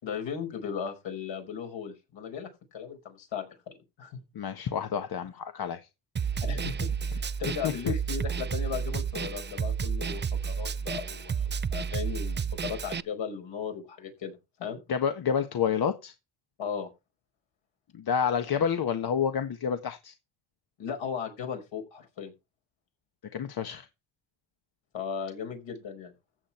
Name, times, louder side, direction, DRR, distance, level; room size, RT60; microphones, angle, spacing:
voice 1, 0.0-3.5 4.0-4.2 6.4-14.8 16.6-16.9 20.8-22.3 24.9-26.1, left 7 dB, 65° left, 5.1 m, -37 dB
voice 2, 4.3-5.9 7.6-7.9 14.9-16.1 17.9-20.1 23.3-23.9, left 7 dB, 45° left, 1.5 m, -29 dB
Snare drum, 6.2-13.0, right 6 dB, 20° right, 0.6 m, -31 dB
14.5 x 8.0 x 4.4 m
cardioid pair, 85°, 49 cm